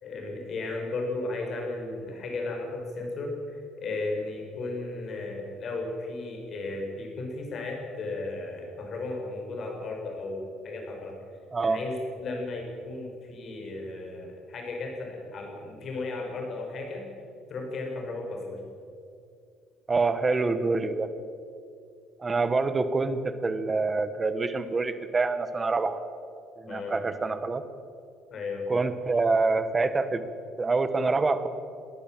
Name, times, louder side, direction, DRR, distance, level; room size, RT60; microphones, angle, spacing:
voice 1, 0.0-11.2 11.6-17.1 17.5-18.6 26.7-27.0 28.3-28.7, left 2 dB, 35° left, 1 dB, 5.1 m, -35 dB
voice 2, 11.5-11.8 19.9-21.1 22.2-26.0 26.6-27.6 28.7-30.3 30.6-31.5, right 3 dB, 15° right, 11 dB, 1.1 m, -26 dB
21.0 x 17.5 x 7.6 m, 2.4 s
cardioid pair, 180°, 0 cm